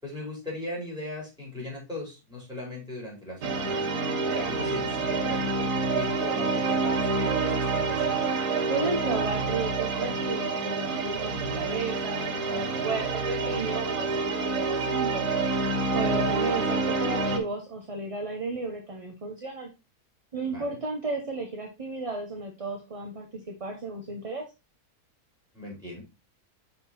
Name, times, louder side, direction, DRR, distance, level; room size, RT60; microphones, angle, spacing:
voice 1, 0.0-3.8 4.3-8.0 16.0-16.3 20.5-20.7 25.5-26.0, left 1 dB, 5° right, -3 dB, 4.2 m, -38 dB
sound 1, 3.4-17.4, right 3 dB, 85° right, 1.5 m, -27 dB
voice 2, 8.7-15.3 15.9-19.7 20.3-24.4, right 3 dB, 30° right, 2 dB, 0.7 m, -33 dB
5.9 x 4.4 x 4.1 m, 0.27 s
omnidirectional pair, 1.6 m